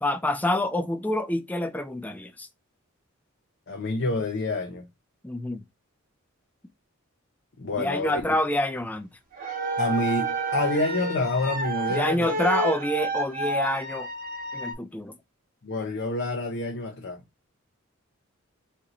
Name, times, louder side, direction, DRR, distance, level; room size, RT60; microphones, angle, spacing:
voice 1, 0.0-2.5 5.2-5.6 7.8-9.1 11.9-14.1 14.5-15.2, left 1 dB, 10° left, 0.4 m, -27 dB
voice 2, 3.7-4.9 7.6-8.4 9.8-12.3 15.6-17.2, left 2 dB, 55° left, 0.7 m, -28 dB
sound 1, 9.3-14.7, right 2 dB, 45° right, 1.1 m, -30 dB
4.3 x 2.6 x 3.0 m
head